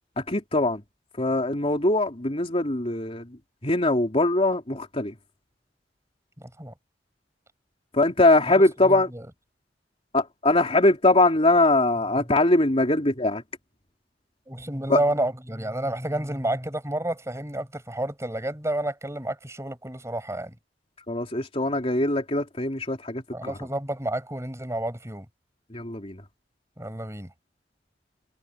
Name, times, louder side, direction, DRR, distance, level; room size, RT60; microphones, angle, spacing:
voice 1, 0.2-0.8 1.2-3.4 3.6-5.2 7.9-9.1 10.1-13.4 14.9-15.0 21.1-23.7 25.7-26.2, left 2 dB, 35° left, 3.4 m, -22 dB
voice 2, 6.4-6.7 8.8-9.2 14.5-20.6 23.3-25.3 26.8-27.3, right 1 dB, 15° right, 6.9 m, -30 dB
head